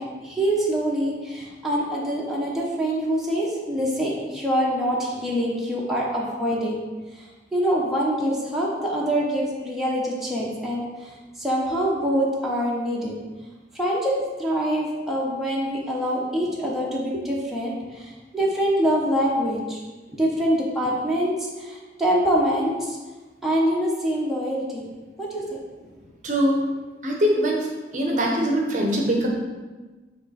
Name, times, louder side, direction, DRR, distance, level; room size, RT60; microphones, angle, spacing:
voice 1, 0.0-6.8 7.5-11.1 11.4-13.1 13.7-19.8 20.1-23.0 23.4-24.9 25.2-25.6, equal, ahead, -5 dB, 0.9 m, -25 dB
voice 2, 26.2-26.6 27.0-27.7 27.9-29.3, equal, 45° right, -1 dB, 0.8 m, -22 dB
7.7 x 3.0 x 4.1 m, 1.3 s
head